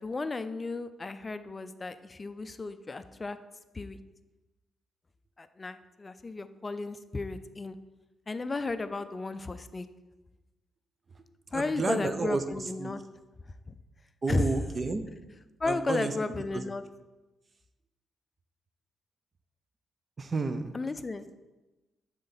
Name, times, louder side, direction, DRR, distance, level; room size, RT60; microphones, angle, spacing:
voice 1, 0.0-3.4 3.7-4.0 5.4-7.8 8.3-9.9 11.5-13.0 13.7-13.8 14.3-14.5 15.6-16.8 20.7-21.3, left 3 dB, 25° left, 11 dB, 0.4 m, -34 dB
voice 2, 11.5-12.4 12.8-12.9 14.2-15.0 15.7-16.1 16.5-16.7 20.2-20.7, right 3 dB, 35° right, 10 dB, 0.5 m, -30 dB
6.5 x 4.4 x 4.0 m, 1.1 s
cardioid pair, 100°, 0 cm